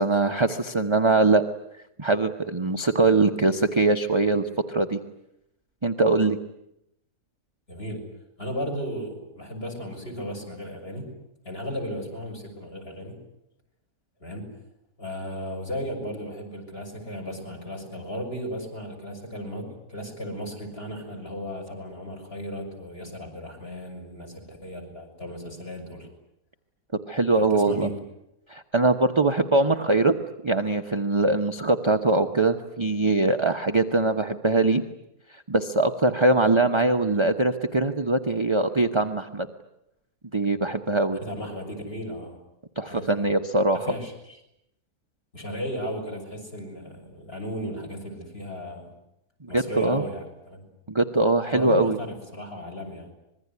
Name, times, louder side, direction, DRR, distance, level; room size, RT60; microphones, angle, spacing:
voice 1, 0.0-1.4 2.0-5.0 5.8-6.4 27.1-27.9 28.5-30.1 30.4-34.8 35.5-39.5 40.3-41.2 42.8-43.9 49.5-50.0 50.9-52.0, right 2 dB, 20° right, 6 dB, 1.0 m, -22 dB
voice 2, 7.7-8.0 8.4-11.1 11.4-13.2 14.2-14.5 15.0-26.1 27.4-27.9 41.2-42.4 42.9-43.3 43.7-44.4 45.3-48.9 49.5-50.6 51.5-53.1, equal, 40° left, 4 dB, 7.0 m, -35 dB
25.5 x 22.0 x 9.6 m, 0.82 s
omnidirectional pair, 1.6 m